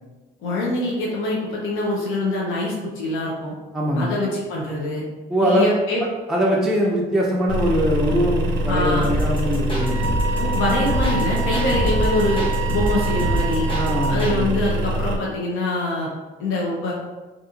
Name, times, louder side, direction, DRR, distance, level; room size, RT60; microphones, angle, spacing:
voice 1, 0.4-3.5 3.9-5.0 5.4-6.0 8.7-9.1 10.4-13.7 14.1-16.1 16.4-16.9, left 2 dB, 85° left, -3 dB, 0.6 m, -24 dB
voice 2, 3.7-4.2 5.3-5.6 6.3-10.1 13.7-14.5, equal, ahead, -4 dB, 0.4 m, -22 dB
sound 1, 7.5-15.2, equal, 65° right, 0.4 m, -24 dB
sound 2, 9.0-14.4, equal, 25° left, 0.8 m, -27 dB
Wind instrument woodwind instrument, 9.8-14.3, right 5 dB, 45° left, 1.2 m, -29 dB
2.7 x 2.5 x 2.4 m, 1.2 s
cardioid pair, 90°, 20 cm